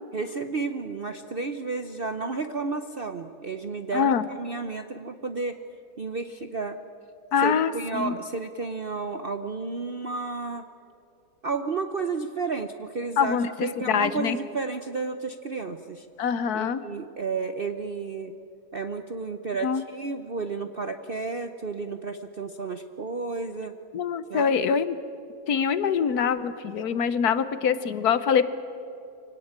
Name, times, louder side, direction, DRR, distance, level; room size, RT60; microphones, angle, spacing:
voice 1, 0.1-5.6 6.0-6.8 7.4-10.6 11.4-16.1 16.5-18.3 18.7-23.7 24.3-24.6, right 4 dB, 50° right, 8 dB, 0.7 m, -32 dB
voice 2, 3.9-4.2 7.3-8.1 13.2-14.4 16.2-16.8 19.6-19.8 23.9-25.0 25.5-28.4, left 7 dB, 65° left, 13 dB, 1.3 m, -24 dB
25.0 x 18.0 x 8.8 m, 2.9 s
omnidirectional pair, 1.9 m